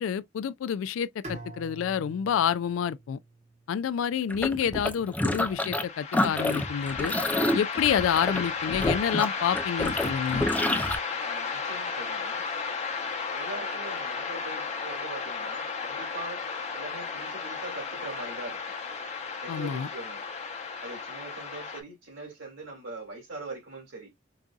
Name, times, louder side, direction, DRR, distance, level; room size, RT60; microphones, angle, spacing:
voice 1, 0.0-3.2 3.7-7.1 7.5-10.5 19.5-19.9, left 8 dB, 75° left, 0.3 m, -28 dB
Bowed string instrument, 1.2-4.3, right 2 dB, 35° right, 1.2 m, -46 dB
sound 1, 4.3-5.8 6.1-11.0, left 1 dB, 10° left, 0.5 m, -28 dB
sound 2, 5.4-21.8, left 5 dB, 35° left, 0.8 m, -34 dB
voice 2, 11.2-12.4 13.3-16.4 16.7-18.7 19.4-20.2 20.8-24.1, right 2 dB, 70° right, 2.8 m, -42 dB
4.7 x 2.6 x 2.3 m
head